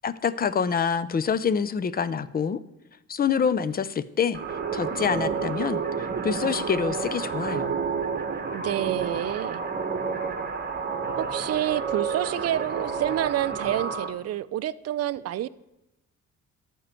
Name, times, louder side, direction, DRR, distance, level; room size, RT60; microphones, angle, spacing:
voice 1, 0.0-2.6 3.1-7.8, left 6 dB, 30° left, 0.5 m, -26 dB
sound 1, 4.3-14.1, right 5 dB, 35° right, 1.2 m, -30 dB
voice 2, 8.5-9.6 11.2-15.5, right 12 dB, 55° right, 0.5 m, -28 dB
12.0 x 4.6 x 7.5 m
cardioid pair, 90°, 30 cm